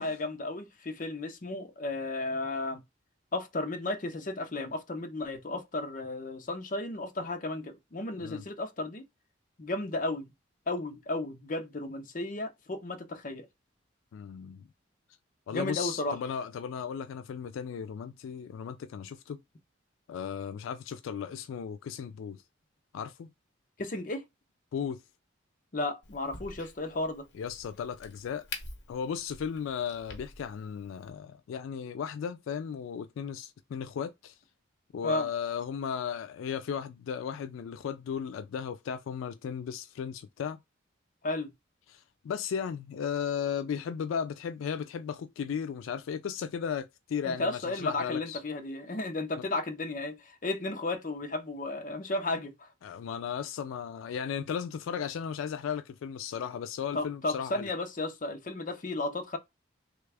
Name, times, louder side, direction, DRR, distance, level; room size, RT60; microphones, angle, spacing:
voice 1, 0.0-2.8 3.3-9.0 9.6-10.3 10.7-13.5 15.5-16.2 23.8-24.3 25.7-27.2 35.0-35.3 41.2-41.5 47.2-52.7 56.9-59.4, left 2 dB, 40° left, 0.6 m, -34 dB
voice 2, 14.1-14.7 15.5-19.4 20.1-22.4 22.9-23.3 24.7-25.0 27.3-28.5 28.9-34.4 34.9-40.6 41.9-48.4 49.4-49.5 52.8-57.7, left 7 dB, 80° left, 0.3 m, -35 dB
Crack, 26.0-31.1, left 4 dB, 65° left, 1.0 m, -47 dB
3.3 x 2.3 x 3.3 m
head